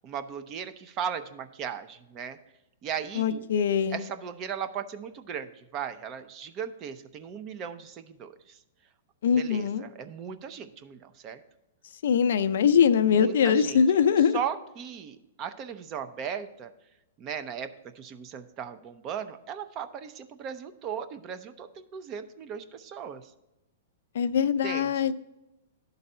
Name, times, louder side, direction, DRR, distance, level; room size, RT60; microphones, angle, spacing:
voice 1, 0.0-2.4 2.8-3.5 3.9-8.6 9.4-11.4 13.1-13.8 14.3-16.7 17.2-23.3 24.6-25.1, right 8 dB, 30° right, 10 dB, 0.6 m, -37 dB
voice 2, 3.1-4.0 9.2-9.8 12.0-14.4 24.1-25.1, left 7 dB, 75° left, 10 dB, 0.5 m, -22 dB
11.5 x 4.0 x 5.5 m, 0.94 s
hypercardioid pair, 140°, 0 cm